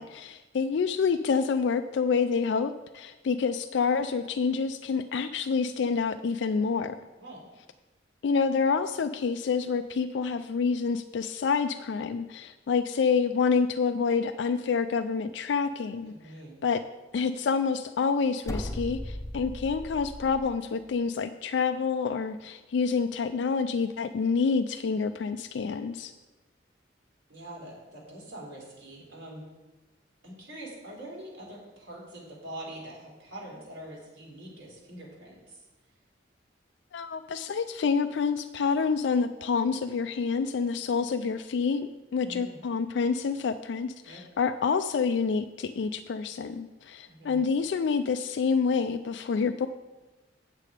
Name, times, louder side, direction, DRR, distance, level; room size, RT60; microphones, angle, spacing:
voice 1, 0.0-7.0 8.2-16.1 16.6-16.8 17.1-26.1 36.9-49.7, left 5 dB, 70° left, 9 dB, 0.4 m, -28 dB
voice 2, 16.1-16.6 27.3-29.5 30.2-35.6 42.2-42.6 44.0-44.2 47.1-47.4, right 1 dB, 85° right, -3 dB, 3.7 m, -44 dB
sound 1, 18.4-20.5, left 1 dB, 15° left, 0.7 m, -37 dB
8.5 x 7.5 x 4.9 m, 1.1 s
head